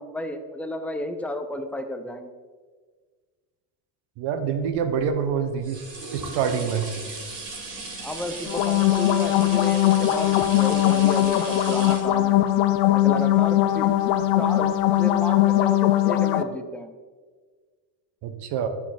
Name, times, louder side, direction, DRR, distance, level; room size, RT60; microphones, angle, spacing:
voice 1, 0.0-2.3 8.0-12.4 12.9-13.9 14.4-16.9, left 1 dB, 5° left, 6 dB, 0.4 m, -32 dB
voice 2, 4.2-5.8 6.1-6.9 18.2-18.7, right 7 dB, 65° right, 7 dB, 1.0 m, -26 dB
sound 1, 4.6-14.4 14.9-15.0, right 3 dB, 45° right, 2.1 m, -38 dB
sound 2, 8.5-16.4, left 14 dB, 70° left, 0.6 m, -20 dB
10.0 x 4.2 x 4.0 m, 1.5 s
cardioid pair, 130°, 44 cm